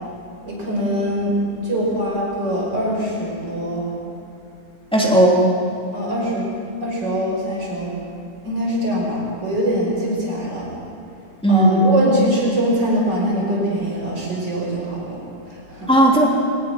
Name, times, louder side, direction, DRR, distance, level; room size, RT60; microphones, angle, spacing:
voice 1, 0.4-1.3 1.6-3.9 5.9-6.5 6.8-7.9 8.4-10.7 11.5-15.9, right 1 dB, 30° right, -3 dB, 5.9 m, -23 dB
voice 2, 4.9-5.5 11.4-12.0 15.9-16.3, right 1 dB, ahead, -2 dB, 2.7 m, -15 dB
23.5 x 20.0 x 6.0 m, 2.6 s
omnidirectional pair, 3.7 m